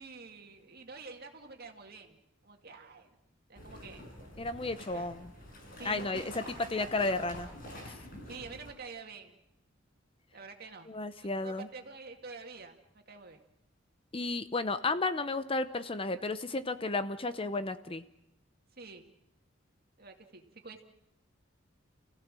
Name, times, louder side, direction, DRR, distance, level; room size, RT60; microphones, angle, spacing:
voice 1, 0.0-3.1 3.5-4.1 4.9-5.1 5.8-6.6 8.2-9.4 10.3-10.9 11.4-12.8 13.1-13.4 18.7-19.1 20.0-20.8, right 4 dB, 55° right, 4 dB, 2.3 m, -48 dB
sound 1, 3.5-8.7, left 1 dB, 50° left, 6.0 m, -47 dB
voice 2, 4.4-5.3 5.8-6.4 6.7-7.5 10.9-11.7 14.1-18.0, left 3 dB, 30° left, 12 dB, 0.8 m, -33 dB
29.5 x 16.0 x 7.6 m, 0.85 s
head